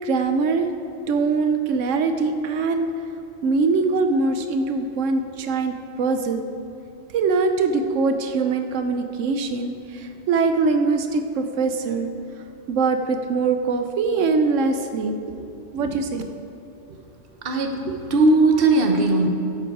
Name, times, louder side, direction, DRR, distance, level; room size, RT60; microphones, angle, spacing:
voice 1, 0.0-0.7 1.1-2.9 3.4-6.4 7.1-12.1 12.7-16.3, right 4 dB, 90° right, 7 dB, 1.0 m, -22 dB
voice 2, 17.4-19.3, right 2 dB, 50° right, 3 dB, 1.1 m, -18 dB
11.0 x 7.8 x 4.7 m, 2.8 s
omnidirectional pair, 1.3 m